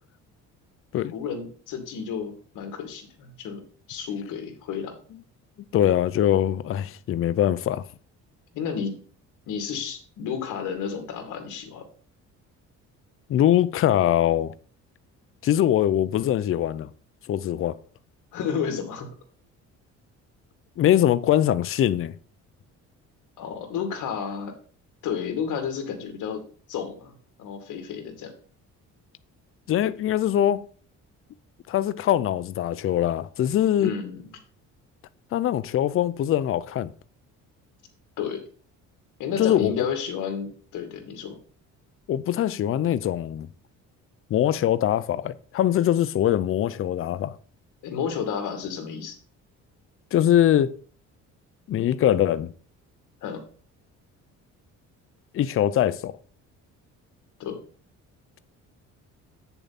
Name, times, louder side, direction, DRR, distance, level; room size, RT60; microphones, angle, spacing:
voice 1, 1.1-3.6 3.9-5.0 8.5-9.0 9.5-11.9 18.3-19.1 23.4-24.5 25.0-26.4 26.7-27.1 27.4-28.3 33.8-34.3 38.2-38.4 39.2-41.4 47.8-49.2 53.2-53.4 57.4-57.6, left 7 dB, 75° left, 2.1 m, -31 dB
voice 2, 5.7-7.8 13.3-14.5 15.4-16.9 17.3-17.8 20.8-22.1 29.7-30.6 31.7-33.9 35.3-36.9 39.4-39.8 42.1-43.5 44.3-47.3 50.1-50.7 51.7-52.5 55.3-56.2, left 11 dB, 45° left, 0.5 m, -22 dB
8.5 x 6.9 x 4.1 m
cardioid pair, 135°, 31 cm